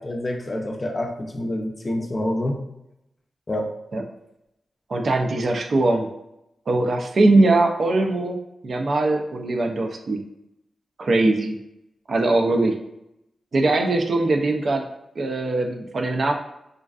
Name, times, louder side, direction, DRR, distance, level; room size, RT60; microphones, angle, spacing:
voice 1, 0.0-2.6 3.5-3.7, left 1 dB, 40° left, 3 dB, 0.4 m, -27 dB
voice 2, 4.9-6.1 6.7-8.4 8.6-10.2 11.0-11.6 12.1-12.8 13.5-14.8 15.2-16.3, right 2 dB, 65° right, 3 dB, 0.3 m, -21 dB
2.4 x 2.2 x 2.3 m, 0.84 s
cardioid pair, 50°, 0 cm